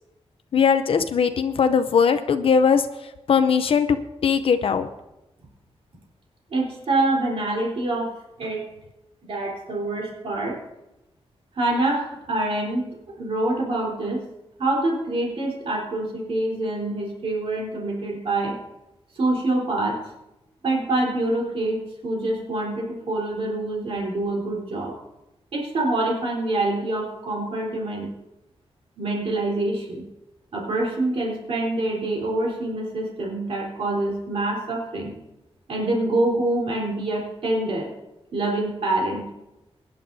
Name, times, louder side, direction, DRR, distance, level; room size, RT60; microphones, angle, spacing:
voice 1, 0.5-2.9 3.3-4.0 4.2-4.9, left 6 dB, 65° left, 9 dB, 0.6 m, -19 dB
voice 2, 6.5-8.6 9.2-10.6 11.6-14.3 14.6-18.6 19.2-20.0 20.6-25.0 25.5-28.1 29.0-30.0 30.5-35.2 35.7-37.9 38.3-39.3, right 2 dB, 65° right, -2 dB, 3.6 m, -26 dB
23.5 x 10.0 x 2.7 m, 0.95 s
wide cardioid pair, 150°, 10 cm